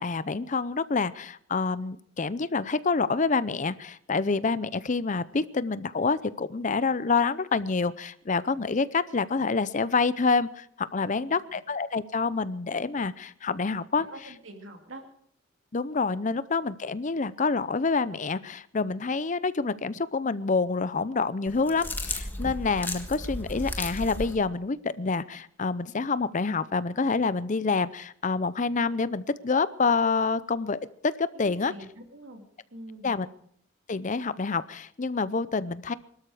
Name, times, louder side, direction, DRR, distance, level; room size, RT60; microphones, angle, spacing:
voice 1, 0.0-14.0 15.7-31.7 33.0-33.3 33.9-35.9, left 4 dB, 40° left, 16 dB, 0.6 m, -27 dB
voice 2, 11.0-11.4 14.1-15.0 31.3-32.4 32.7-33.3, right 1 dB, 70° right, 4 dB, 2.7 m, -45 dB
sound 1, 21.5-24.4, left 1 dB, 10° left, 1.5 m, -34 dB
23.0 x 13.0 x 4.9 m, 0.65 s
head